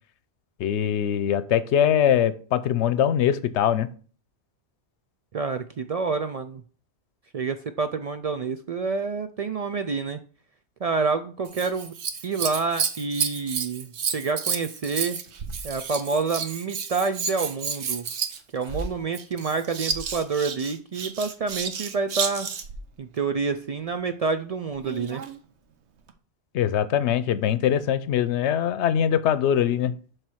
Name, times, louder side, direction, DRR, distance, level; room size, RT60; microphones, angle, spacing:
voice 1, 0.6-3.9 26.5-30.0, left 9 dB, 85° left, 14 dB, 0.9 m, -22 dB
voice 2, 5.3-6.6 7.3-10.2 10.8-11.9 12.2-15.2 15.6-18.1 18.5-22.5 23.0-25.2, right 4 dB, 65° right, 9 dB, 0.3 m, -28 dB
Scissors, 11.4-22.8 24.8-25.4 26.1-26.2, right 6 dB, 80° right, 1.1 m, -31 dB
7.2 x 3.3 x 6.2 m, 0.42 s
omnidirectional pair, 1.1 m